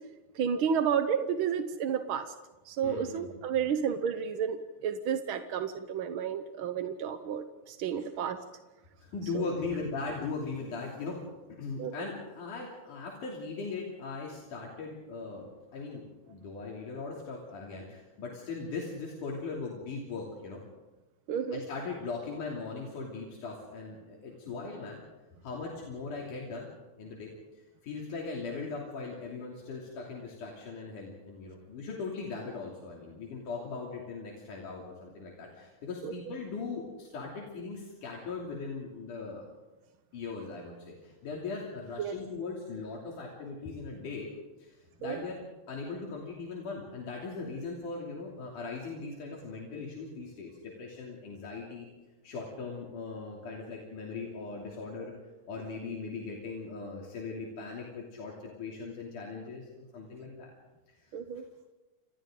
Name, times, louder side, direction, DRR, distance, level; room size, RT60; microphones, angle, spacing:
voice 1, 0.4-2.3 2.7-4.6 4.8-8.4 9.3-9.4 11.8-11.9 21.3-21.6 36.0-36.1 42.0-42.1 45.0-45.2 61.1-61.4, right 7 dB, 65° right, 8 dB, 1.3 m, -31 dB
voice 2, 2.8-3.3 3.7-3.8 7.9-8.1 9.0-11.2 11.5-20.6 21.5-25.0 25.3-26.7 27.0-27.3 27.8-39.4 40.1-44.3 44.6-45.4 45.7-51.9 52.2-55.1 55.5-60.5 61.0-61.1, left 4 dB, 85° left, -2 dB, 4.5 m, -39 dB
30.0 x 28.0 x 3.9 m, 1.1 s
omnidirectional pair, 3.5 m